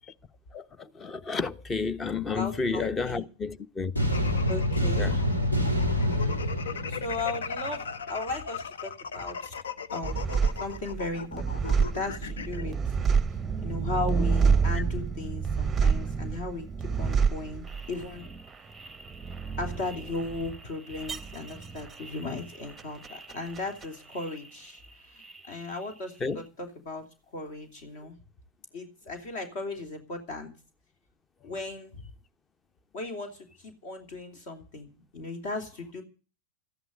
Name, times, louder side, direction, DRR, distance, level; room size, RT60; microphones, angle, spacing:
voice 1, 0.5-3.9 5.0-5.1 14.7-14.8 26.2-26.4, left 4 dB, 20° left, 1.0 m, -31 dB
voice 2, 2.2-3.3 4.5-5.2 6.9-9.5 9.9-10.2 10.6-12.8 13.6-18.3 19.6-27.0 27.3-28.1 28.7-30.5 31.4-32.0 32.9-36.0, left 3 dB, 50° left, 3.0 m, -36 dB
sound 1, 4.0-7.9, left 1 dB, 85° left, 3.3 m, -27 dB
sound 2, 4.0-12.6, left 6 dB, 65° left, 0.8 m, -38 dB
sound 3, 10.0-24.9 25.2-26.0, right 6 dB, 10° right, 0.8 m, -29 dB
13.5 x 11.0 x 7.9 m
figure-of-eight pair, 90°, 0 cm